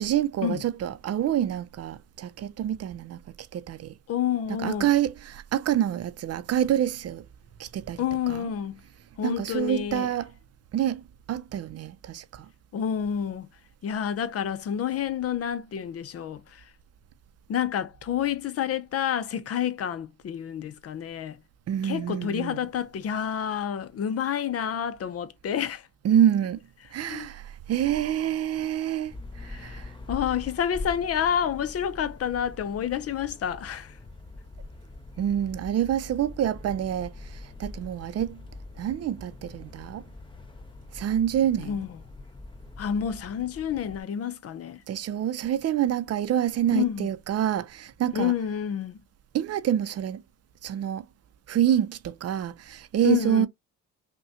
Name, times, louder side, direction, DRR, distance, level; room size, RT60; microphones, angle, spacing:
voice 1, 0.0-3.2 3.5-3.9 4.6-7.3 7.6-8.0 8.3-8.5 9.2-10.3 10.7-11.0 11.3-12.5 21.7-22.7 26.0-26.6 26.9-29.9 35.2-38.4 38.8-40.0 40.9-41.8 44.9-48.3 49.3-50.2 50.6-51.1 51.5-53.5, right 10 dB, 55° right, 0.5 m, -27 dB
voice 2, 4.1-4.9 8.0-8.8 9.2-10.1 12.7-13.5 13.8-16.7 17.5-21.4 21.8-25.9 27.1-27.3 29.4-29.8 30.1-33.9 41.6-42.0 42.8-44.8 46.7-47.1 48.1-49.0 53.0-53.5, left 9 dB, 50° left, 0.6 m, -29 dB
sound 1, 29.1-44.0, left 2 dB, 15° left, 0.7 m, -43 dB
5.6 x 2.2 x 2.7 m
cardioid pair, 90°, 30 cm